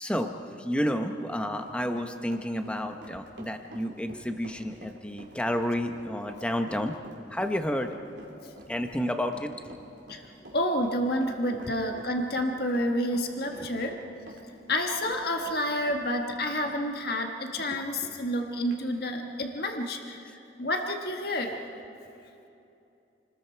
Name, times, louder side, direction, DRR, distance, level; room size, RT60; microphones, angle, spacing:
voice 1, 0.0-6.9 7.3-7.9 8.7-9.5 11.6-11.7 13.5-13.9 17.7-18.1 21.5-21.6, equal, 5° left, 5 dB, 1.0 m, -31 dB
Run, 1.2-17.7 18.1-18.2 18.7-18.8, right 1 dB, 80° right, 3.3 m, -49 dB
voice 2, 8.3-8.7 10.1-10.2 10.5-14.0 14.7-20.2 20.6-21.5, left 1 dB, 55° left, 3 dB, 1.6 m, -29 dB
29.0 x 20.5 x 4.6 m, 2.8 s
head